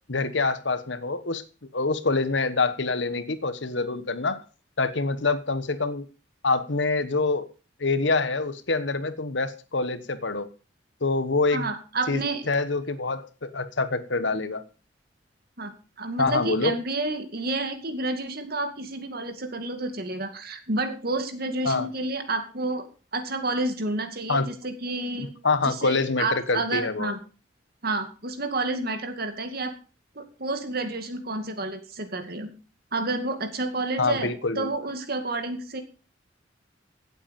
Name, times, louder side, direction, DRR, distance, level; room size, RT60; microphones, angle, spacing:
voice 1, 0.1-1.4 1.7-4.4 4.8-6.0 6.4-7.5 7.8-10.5 11.0-11.7 12.1-12.2 12.5-14.6 16.2-16.7 21.6-21.9 24.3-24.5 25.2-27.1 34.0-34.7, left 3 dB, 70° left, 12 dB, 1.3 m, -26 dB
voice 2, 11.5-12.5 15.6-15.7 16.0-22.9 23.1-25.3 25.6-27.2 27.8-29.8 30.2-32.5 32.9-34.3 34.6-35.8, right 2 dB, 55° right, 7 dB, 2.3 m, -30 dB
16.5 x 8.3 x 5.3 m, 0.35 s
head